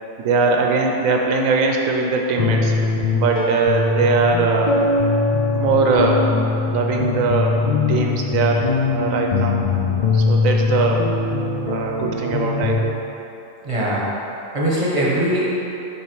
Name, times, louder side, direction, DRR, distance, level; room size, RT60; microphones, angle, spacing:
voice 1, 0.2-2.7 3.1-4.7 5.5-6.3 6.7-7.6 7.9-9.6 10.1-11.1 11.5-13.0, right 4 dB, 80° right, 1 dB, 1.1 m, -20 dB
sound 1, 2.4-12.9, left 3 dB, 85° left, 0.3 m, -21 dB
voice 2, 13.6-14.2 14.5-15.6, right 1 dB, 25° right, -6 dB, 1.1 m, -21 dB
8.8 x 3.6 x 4.7 m, 3.0 s
omnidirectional pair, 1.4 m